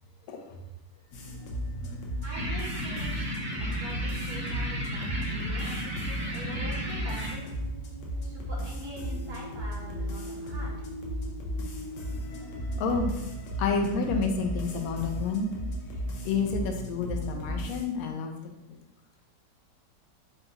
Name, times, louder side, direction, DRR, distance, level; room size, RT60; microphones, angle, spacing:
sound 1, 1.1-17.9, equal, 90° left, 1.4 m, -35 dB
voice 1, 2.2-3.4 3.8-5.9 6.3-7.5 8.2-10.7, equal, 60° right, -3 dB, 1.5 m, -44 dB
sound 2, 2.3-7.3, equal, 30° right, 0.8 m, -34 dB
voice 2, 6.1-6.6 12.8-13.1 13.6-15.5 16.2-18.3, left 4 dB, 70° left, 3 dB, 0.9 m, -30 dB
3.8 x 2.3 x 4.1 m, 0.93 s
omnidirectional pair, 1.9 m